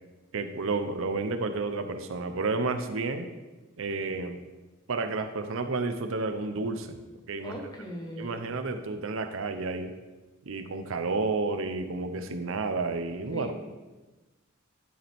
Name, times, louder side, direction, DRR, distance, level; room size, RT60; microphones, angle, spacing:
voice 1, 0.3-3.3 3.8-4.4 4.9-7.0 7.3-7.5 8.2-9.9 10.4-13.5, right 3 dB, 70° right, 8 dB, 0.7 m, -31 dB
voice 2, 7.4-8.5 13.3-13.5, equal, 20° left, 0 dB, 1.1 m, -39 dB
11.0 x 5.0 x 3.5 m, 1.2 s
head